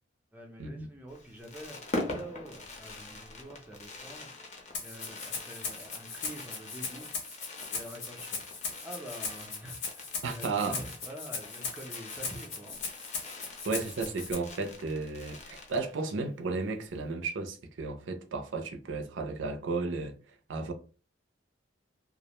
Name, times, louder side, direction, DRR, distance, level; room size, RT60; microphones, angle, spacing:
voice 1, 0.3-1.8 2.0-4.3 4.8-7.1 7.6-8.4 8.8-12.8 13.5-13.6, equal, 10° right, 0.4 m, -46 dB
Fireworks, 1.1-16.3 16.6-16.7 16.8-17.1, left 2 dB, 35° left, 0.6 m, -43 dB
Rattle (instrument), 4.7-14.3, left 4 dB, 65° left, 0.8 m, -38 dB
voice 2, 10.2-10.8 13.6-20.2 20.5-20.7, right 3 dB, 80° right, 0.5 m, -34 dB
2.4 x 2.1 x 2.9 m
head